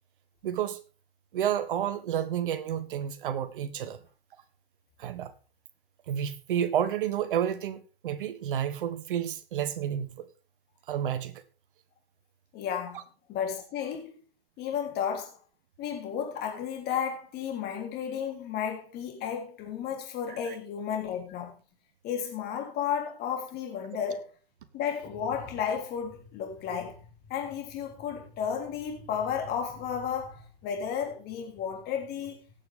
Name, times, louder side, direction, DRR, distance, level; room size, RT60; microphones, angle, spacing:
voice 1, 0.4-0.8 1.3-4.0 5.0-5.3 6.1-10.3 10.9-11.4 20.3-20.6, right 9 dB, 60° right, 1.4 m, -30 dB
voice 2, 12.5-14.2 14.6-15.4 15.8-21.6 22.0-24.3 24.7-32.4, left 8 dB, 35° left, 3.4 m, -33 dB
18.0 x 7.1 x 3.6 m
hypercardioid pair, 115°, 30 cm